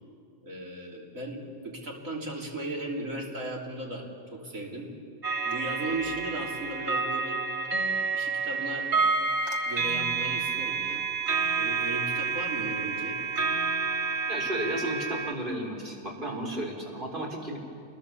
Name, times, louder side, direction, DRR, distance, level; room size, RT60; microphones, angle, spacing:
voice 1, 0.4-4.1 4.3-4.9 5.5-7.4 8.1-8.9 9.7-11.0 11.6-13.2, right 1 dB, 75° right, -1 dB, 3.6 m, -36 dB
sound 1, 5.2-15.3, right 4 dB, 55° right, 1.6 m, -29 dB
voice 2, 14.3-17.6, right 1 dB, 35° right, -1 dB, 4.4 m, -33 dB
27.5 x 21.0 x 7.2 m, 2.4 s
omnidirectional pair, 1.4 m